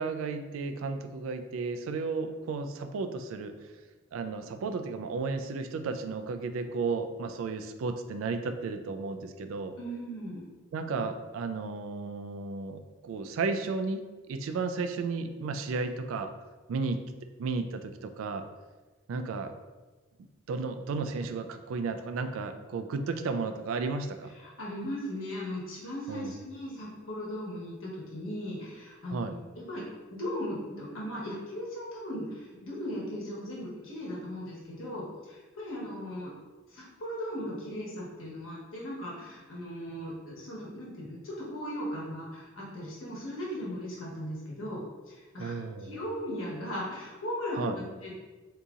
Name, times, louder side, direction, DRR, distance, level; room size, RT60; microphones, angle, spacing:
voice 1, 0.0-3.6 4.1-9.7 10.7-14.0 14.3-16.3 16.7-17.0 17.4-18.5 19.1-19.5 20.5-24.3 26.1-26.4 29.1-29.3 45.4-45.9 47.6-47.8, right 4 dB, 75° right, 8 dB, 0.3 m, -33 dB
voice 2, 9.8-10.4 24.4-29.8 30.1-36.3 36.7-44.8 45.1-48.1, equal, 80° left, -5 dB, 1.1 m, -38 dB
3.8 x 2.8 x 2.4 m, 1.3 s
head